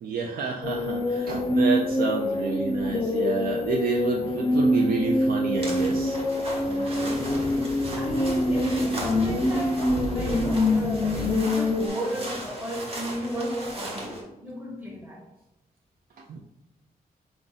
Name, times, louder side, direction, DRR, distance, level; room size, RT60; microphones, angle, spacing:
voice 1, 0.0-6.2 16.3-16.4, right 4 dB, 70° right, 0 dB, 0.4 m, -29 dB
sound 1, 0.6-11.9, left 1 dB, 30° left, 0.4 m, -25 dB
sound 2, 5.6-14.2, right 1 dB, 40° right, 1.0 m, -38 dB
voice 2, 6.6-15.2, equal, 10° right, -2 dB, 0.8 m, -34 dB
4.5 x 2.6 x 4.0 m, 0.94 s
wide cardioid pair, 180°, 16 cm